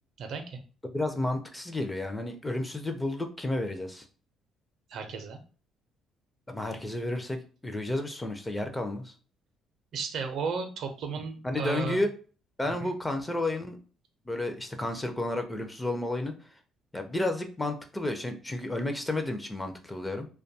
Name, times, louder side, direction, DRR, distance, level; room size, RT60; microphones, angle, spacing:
voice 1, 0.2-0.6 4.9-5.4 9.9-12.0 12.8-12.9, right 5 dB, 65° right, 6 dB, 0.5 m, -34 dB
voice 2, 0.9-4.1 6.5-9.1 11.4-12.1 12.6-13.8 14.3-16.6 16.9-20.3, left 2 dB, 10° left, 6 dB, 0.4 m, -31 dB
2.5 x 2.2 x 2.6 m, 0.39 s
cardioid pair, 105°, 0 cm